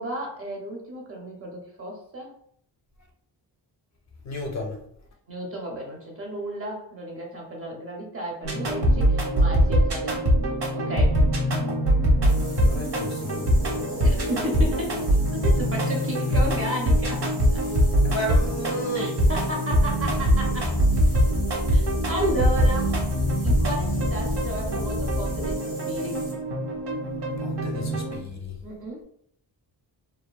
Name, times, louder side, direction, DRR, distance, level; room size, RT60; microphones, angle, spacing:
voice 1, 0.0-2.3 5.3-10.2 10.7-11.2 14.0-15.0 15.3-17.2 17.5-17.6 18.9-20.7 21.7-22.9 23.4-26.2 28.6-29.0, right 1 dB, 35° right, 0.6 m, -33 dB
voice 2, 4.2-4.9 12.5-14.4 14.9-15.0 18.0-19.1 27.4-28.6, equal, 45° left, 0.4 m, -33 dB
sound 1, 8.4-28.2, equal, 70° right, 0.9 m, -23 dB
sound 2, 12.3-26.4, right 1 dB, 90° right, 1.2 m, -45 dB
sound 3, 20.0-25.6, left 2 dB, 5° left, 0.8 m, -30 dB
2.7 x 2.3 x 2.2 m
wide cardioid pair, 155°, 41 cm